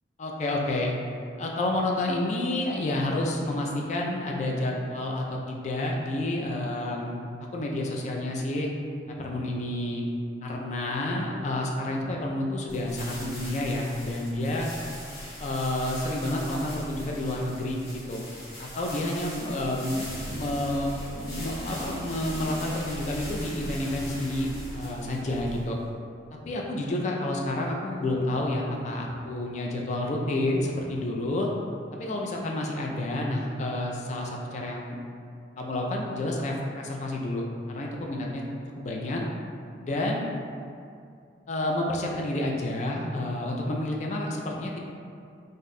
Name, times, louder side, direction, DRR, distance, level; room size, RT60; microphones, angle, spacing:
voice 1, 0.2-0.9 1.4-8.7 9.1-10.0 10.4-14.7 15.4-18.2 18.6-25.8 26.3-31.5 31.9-35.0 35.6-38.4 38.8-39.2 39.8-40.3 41.5-44.8, left 1 dB, 40° left, -1 dB, 0.3 m, -29 dB
sound 1, 12.7-25.8, left 1 dB, 55° left, 1.1 m, -41 dB
sound 2, 20.1-25.6, right 2 dB, 85° right, 0.3 m, -41 dB
2.6 x 2.2 x 3.9 m, 2.4 s
head